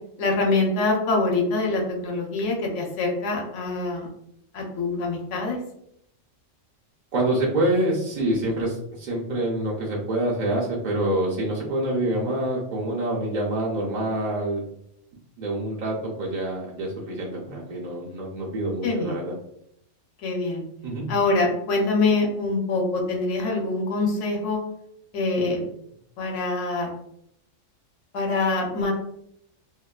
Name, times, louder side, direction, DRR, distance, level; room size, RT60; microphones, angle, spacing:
voice 1, 0.2-4.1 4.5-5.6 18.8-19.1 20.2-20.6 21.1-24.6 25.1-25.7 26.2-26.9 28.1-28.9, left 3 dB, 75° left, 1 dB, 1.0 m, -24 dB
voice 2, 7.1-14.6 15.4-19.3 20.8-21.1, right 1 dB, 70° right, -4 dB, 0.4 m, -26 dB
2.6 x 2.1 x 2.3 m, 0.74 s
omnidirectional pair, 1.3 m